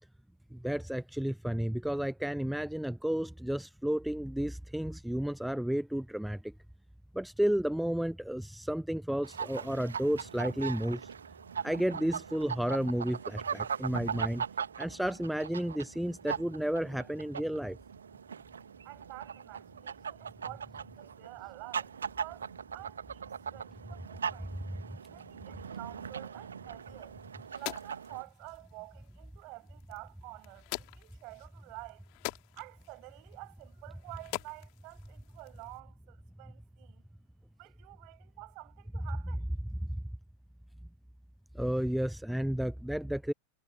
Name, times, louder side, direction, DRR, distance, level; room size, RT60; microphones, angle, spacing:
voice 1, 0.5-6.5 7.1-11.1 11.6-14.5 14.8-17.8 24.9-25.0 39.9-40.0 41.5-43.3, right 1 dB, ahead, 0.6 m, -32 dB
sound 1, 9.2-28.2, right 7 dB, 70° right, 1.7 m, -40 dB
voice 2, 18.8-24.6 25.1-27.2 27.5-32.0 32.5-37.0 37.6-39.5, right 28 dB, 45° right, 6.9 m, -49 dB
sound 2, 26.8-35.8, left 37 dB, 45° left, 2.6 m, -46 dB
figure-of-eight pair, 90°, 0 cm